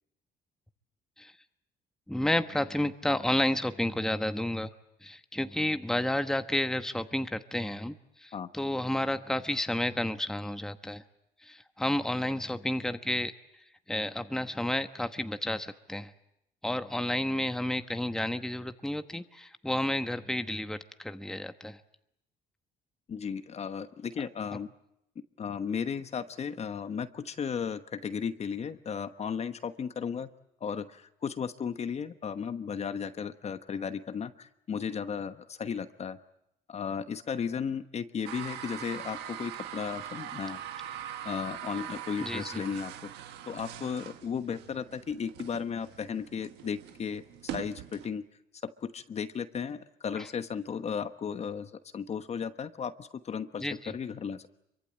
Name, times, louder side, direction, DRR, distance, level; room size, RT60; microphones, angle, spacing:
voice 1, 2.1-4.7 5.0-11.0 11.4-13.3 13.9-16.1 16.6-21.8 42.2-42.6 50.1-50.3 53.6-53.9, left 1 dB, 5° left, 9 dB, 1.1 m, -31 dB
voice 2, 23.1-24.7 25.4-30.3 30.6-36.2 36.7-40.6 41.2-43.1 43.5-47.2 47.5-48.2 48.6-54.5, left 7 dB, 40° left, 10 dB, 1.2 m, -35 dB
sound 1, 38.2-48.1, right 11 dB, 90° right, 1.7 m, -42 dB
26.5 x 23.5 x 8.9 m, 0.81 s
cardioid pair, 110°, 17 cm